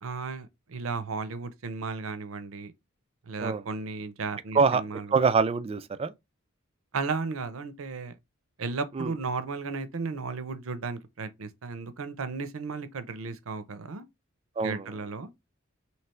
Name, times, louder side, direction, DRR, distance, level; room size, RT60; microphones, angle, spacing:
voice 1, 0.0-2.7 3.3-5.1 6.9-8.1 8.6-14.0 14.6-15.3, right 4 dB, 80° right, 0.6 m, -34 dB
voice 2, 5.1-6.1 8.9-9.1 14.6-14.9, right 5 dB, 30° right, 0.3 m, -25 dB
3.3 x 2.8 x 4.3 m
head